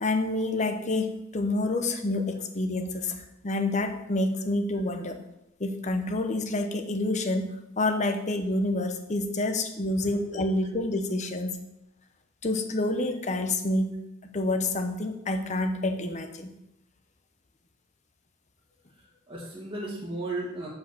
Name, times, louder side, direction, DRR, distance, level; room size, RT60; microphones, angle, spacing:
voice 1, 0.0-3.2 3.4-5.2 5.6-11.6 12.4-14.0 14.3-16.5, left 2 dB, 35° left, 7 dB, 0.8 m, -28 dB
voice 2, 18.9-20.7, right 2 dB, 25° right, -7 dB, 1.4 m, -35 dB
6.5 x 5.3 x 6.9 m, 0.88 s
head